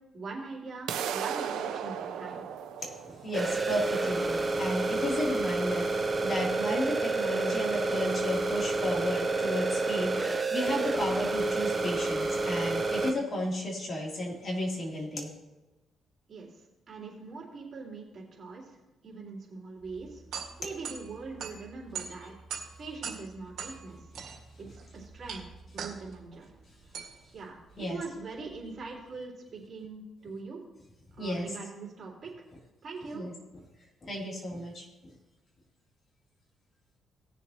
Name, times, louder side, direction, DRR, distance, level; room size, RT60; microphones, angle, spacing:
voice 1, 0.1-2.4 16.3-20.2 20.6-22.3 22.8-24.1 24.6-25.4 25.7-26.5 27.3-30.6 31.2-32.3 32.8-33.3, right 4 dB, 45° right, -3 dB, 3.6 m, -42 dB
sound 1, 0.9-6.8, right 8 dB, 90° right, 0.8 m, -37 dB
voice 2, 2.8-15.3 22.2-22.3 27.8-28.0 31.2-31.5 33.1-33.3 34.0-34.9, left 1 dB, 40° left, -3 dB, 3.3 m, -33 dB
sound 2, 3.3-13.1, right 3 dB, 25° right, 1.1 m, -29 dB
sound 3, 19.8-29.0, right 6 dB, 70° right, 2.0 m, -43 dB
18.5 x 7.0 x 3.1 m, 1.1 s
cardioid pair, 90°, 0 cm